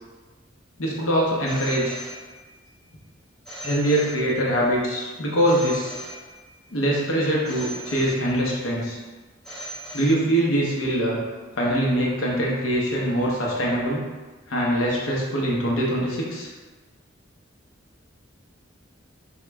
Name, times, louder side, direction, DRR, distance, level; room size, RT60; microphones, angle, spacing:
voice 1, 0.8-2.0 3.6-6.0 6.7-9.0 9.9-11.2 11.5-14.1 14.5-16.5, right 1 dB, 80° left, -4 dB, 0.8 m, -23 dB
Telephone, 1.5-2.7 3.4-4.7 5.4-6.7 7.4-8.7 9.4-10.7, right 1 dB, ahead, 0.6 m, -39 dB
3.0 x 2.3 x 3.4 m, 1.3 s
head